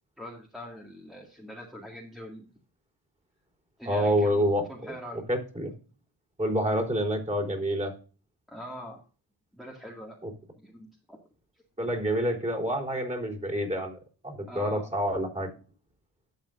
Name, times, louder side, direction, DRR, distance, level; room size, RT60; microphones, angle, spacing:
voice 1, 0.2-2.4 3.8-5.3 8.5-9.0 9.5-10.2 10.6-11.2 14.5-14.9, equal, ahead, -1 dB, 2.0 m, -43 dB
voice 2, 3.9-4.6 5.3-5.7 6.4-7.9 11.8-14.0 14.2-15.5, equal, 15° right, -2 dB, 3.8 m, -27 dB
12.0 x 7.8 x 2.5 m, 0.37 s
cardioid pair, 80°, 44 cm